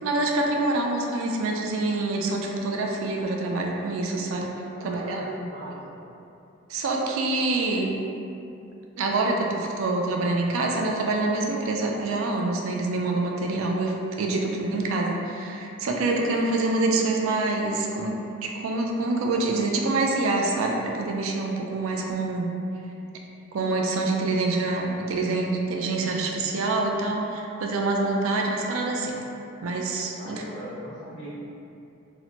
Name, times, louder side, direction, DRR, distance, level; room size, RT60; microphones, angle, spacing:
voice 1, 0.0-4.5 4.8-5.4 5.6-5.8 6.7-7.9 9.0-22.5 23.5-29.1 29.6-30.4, right 2 dB, 70° right, 0 dB, 0.3 m, -26 dB
voice 2, 4.7-6.0 30.2-31.3, equal, 35° left, -15 dB, 1.4 m, -40 dB
2.8 x 2.1 x 2.8 m, 2.7 s
head